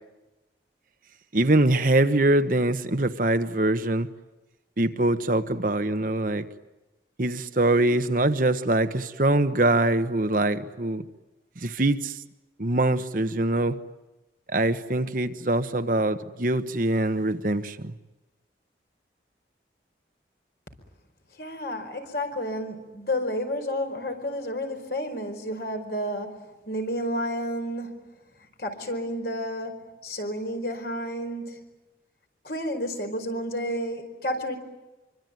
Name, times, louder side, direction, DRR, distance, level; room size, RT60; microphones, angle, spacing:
voice 1, 1.3-4.1 4.8-6.4 7.2-11.1 11.6-12.2 12.6-13.8 14.5-17.9, right 2 dB, 50° right, 1.2 m, -23 dB
voice 2, 21.4-28.1 28.6-31.7 32.4-34.6, equal, 60° left, 4.8 m, -31 dB
26.0 x 25.0 x 9.2 m
head